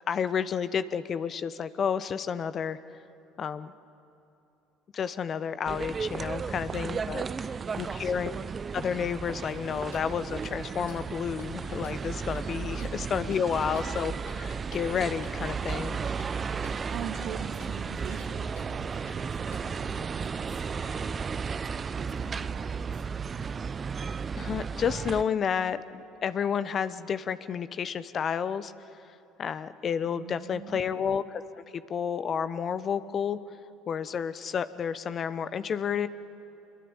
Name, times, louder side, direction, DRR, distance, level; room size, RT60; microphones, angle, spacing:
voice 1, 0.0-2.8 3.4-3.7 4.9-7.5 7.8-8.3 8.7-16.0 24.4-28.7 29.4-33.4 33.9-36.1, left 7 dB, 45° left, 14 dB, 0.9 m, -31 dB
sound 1, 5.6-25.2, right 5 dB, 35° right, 0.6 m, -34 dB
voice 2, 6.7-7.0 7.6-7.9 12.8-13.1 16.4-16.6 16.8-21.1 22.0-23.0 30.1-30.8, right 7 dB, 60° right, 4 dB, 2.7 m, -43 dB
Clock, 9.4-20.0, left 3 dB, 85° left, 5.1 m, -54 dB
26.0 x 22.5 x 8.9 m, 3.0 s
hypercardioid pair, 65°, 0 cm